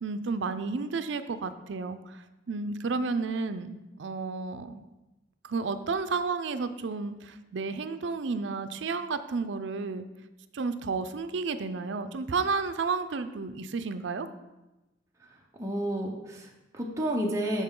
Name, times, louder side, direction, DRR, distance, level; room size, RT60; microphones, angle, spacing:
voice 1, 0.0-2.2 2.5-4.8 5.4-10.1 10.5-14.3, right 4 dB, 75° right, 10 dB, 0.5 m, -32 dB
voice 2, 15.5-17.6, right 1 dB, 15° right, -1 dB, 0.9 m, -31 dB
12.5 x 4.4 x 3.8 m, 1.0 s
head